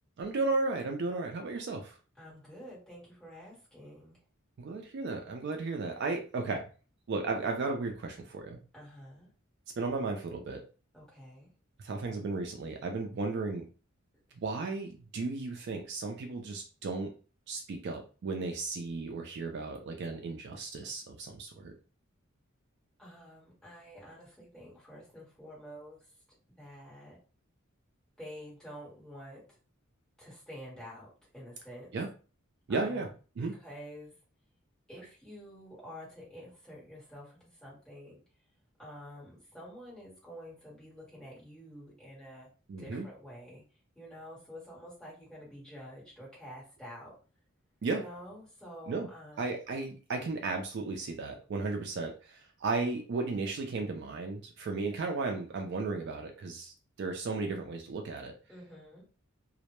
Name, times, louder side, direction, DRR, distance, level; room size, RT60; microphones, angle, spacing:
voice 1, 0.2-2.0 4.6-6.7 7.1-8.6 9.8-10.6 11.8-13.6 14.4-17.1 17.5-21.7 31.9-32.1 32.7-33.1 33.4-33.5 42.7-43.1 47.8-48.0 48.9-49.1 49.4-58.3, right 3 dB, 55° right, 3 dB, 0.4 m, -34 dB
voice 2, 2.2-4.2 8.7-9.3 10.9-11.5 23.0-26.0 26.6-27.2 28.2-29.6 30.2-31.9 32.7-33.1 33.4-34.1 34.9-38.2 38.8-42.5 42.8-43.6 43.9-47.1 47.9-49.6 58.5-59.0, equal, ahead, -6 dB, 1.1 m, -48 dB
2.1 x 2.0 x 2.9 m, 0.36 s
head